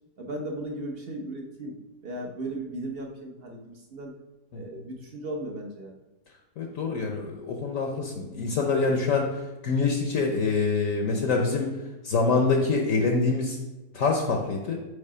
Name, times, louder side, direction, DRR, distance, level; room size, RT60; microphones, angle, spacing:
voice 1, 0.2-1.7 2.0-4.1 4.5-5.9, right 1 dB, 45° right, 1 dB, 0.8 m, -36 dB
voice 2, 6.6-9.4 9.6-11.7 12.0-13.6 13.9-14.8, left 4 dB, 65° left, 2 dB, 1.0 m, -25 dB
5.5 x 3.9 x 4.9 m, 1.1 s
omnidirectional pair, 1.7 m